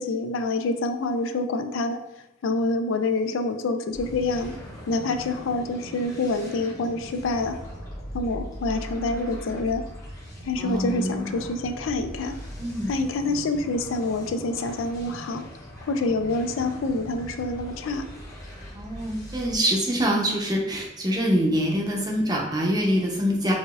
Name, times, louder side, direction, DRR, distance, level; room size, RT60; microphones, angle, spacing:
voice 1, 0.0-2.0 2.4-4.5 4.9-7.6 8.1-9.8 10.4-12.4 12.9-15.4 15.9-18.1, left 2 dB, 90° left, 8 dB, 0.4 m, -27 dB
sound 1, 3.9-19.6, equal, 15° left, 0.9 m, -40 dB
voice 2, 10.6-11.3 12.6-12.9 18.7-23.5, equal, 20° right, -1 dB, 0.6 m, -25 dB
4.8 x 2.6 x 2.4 m, 0.93 s
head